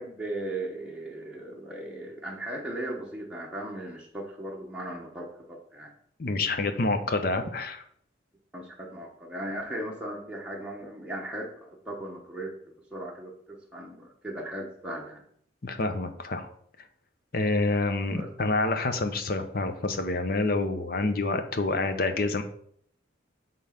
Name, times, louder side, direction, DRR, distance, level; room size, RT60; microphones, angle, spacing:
voice 1, 0.0-5.9 8.5-15.2 18.1-18.3, right 1 dB, 5° right, -3 dB, 0.9 m, -37 dB
voice 2, 6.2-7.8 15.6-16.5 17.3-22.4, left 3 dB, 50° left, 8 dB, 0.7 m, -27 dB
5.3 x 3.8 x 5.6 m, 0.64 s
head